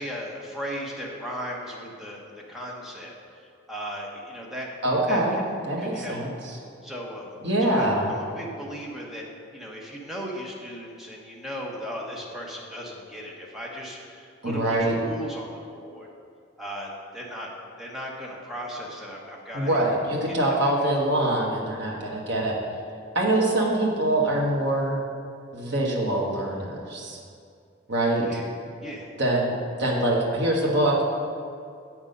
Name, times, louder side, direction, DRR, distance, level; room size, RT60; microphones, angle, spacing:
voice 1, 0.0-3.1 3.7-4.7 5.1-5.5 5.8-6.2 6.8-9.2 9.5-16.1 16.6-17.5 17.8-19.9 20.3-20.4 20.6-20.8 22.0-22.2 28.2-28.5 28.8-29.1, equal, ahead, -3 dB, 1.1 m, -37 dB
voice 2, 4.8-5.4 5.7-6.5 7.4-8.1 14.4-14.9 19.5-22.5 23.1-25.0 25.5-27.2 27.9-28.3 29.2-29.5 29.8-31.0, right 1 dB, 55° right, -3 dB, 1.6 m, -24 dB
8.0 x 6.1 x 5.4 m, 2.3 s
head